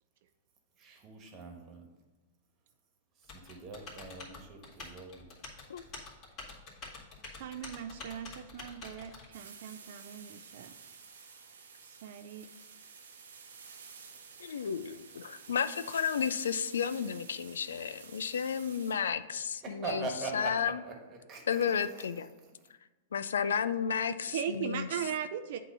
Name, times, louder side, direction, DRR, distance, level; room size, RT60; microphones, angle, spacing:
voice 1, 0.8-1.9 3.2-5.3 19.4-22.6, right 3 dB, 30° right, 2 dB, 1.3 m, -42 dB
Typing, 3.3-9.3, left 3 dB, 35° left, 2.1 m, -47 dB
voice 2, 7.3-10.7 11.8-12.5 24.1-25.6, right 9 dB, 65° right, 8 dB, 0.4 m, -39 dB
sound 1, 9.3-18.9, right 5 dB, 85° right, 0.9 m, -51 dB
voice 3, 14.4-20.0 20.3-20.7 21.5-22.3 23.1-24.9, left 7 dB, 85° left, 14 dB, 0.3 m, -32 dB
8.1 x 2.8 x 5.4 m, 1.2 s
hypercardioid pair, 125°, 0 cm